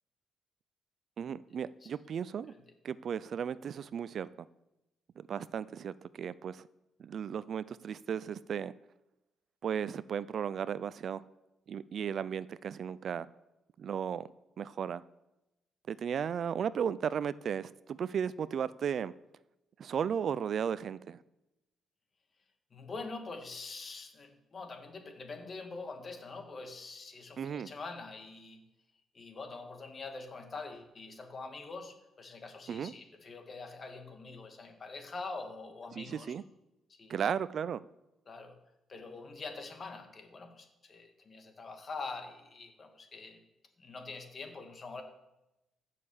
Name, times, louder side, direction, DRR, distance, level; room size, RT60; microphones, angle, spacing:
voice 1, 1.2-2.5 2.8-4.5 5.2-6.7 7.0-8.7 9.6-11.3 11.7-13.3 13.8-14.3 14.6-15.0 15.9-19.1 19.8-21.2 27.4-27.7 32.7-32.9 36.0-36.4 37.1-37.8, right 8 dB, 60° right, 18 dB, 0.4 m, -35 dB
voice 2, 22.7-28.6 29.1-36.3 36.9-37.2 38.3-38.6 38.9-43.4 43.8-45.0, left 3 dB, 40° left, 4 dB, 2.4 m, -44 dB
15.0 x 6.7 x 7.0 m, 0.94 s
cardioid pair, 90°, 0 cm